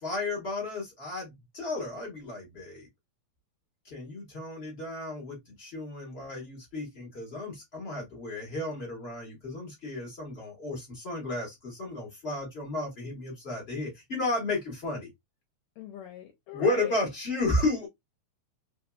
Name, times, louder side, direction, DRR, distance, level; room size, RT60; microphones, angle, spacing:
voice 1, 0.0-2.9 3.8-15.1 16.5-17.9, left 2 dB, 45° left, 0.8 m, -33 dB
voice 2, 15.8-17.0, left 10 dB, 75° left, 1.9 m, -41 dB
4.4 x 2.7 x 2.2 m
omnidirectional pair, 3.4 m